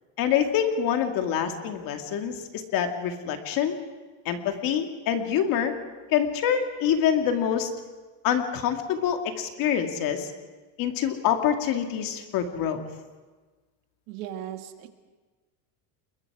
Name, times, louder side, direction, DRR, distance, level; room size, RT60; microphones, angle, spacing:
voice 1, 0.2-3.8 4.3-5.7 6.1-7.7 8.2-10.3 10.8-12.8, left 9 dB, 50° left, 5 dB, 2.3 m, -26 dB
voice 2, 14.1-14.9, right 11 dB, 80° right, 7 dB, 2.0 m, -37 dB
28.5 x 22.0 x 4.9 m, 1.3 s
cardioid pair, 155°, 42 cm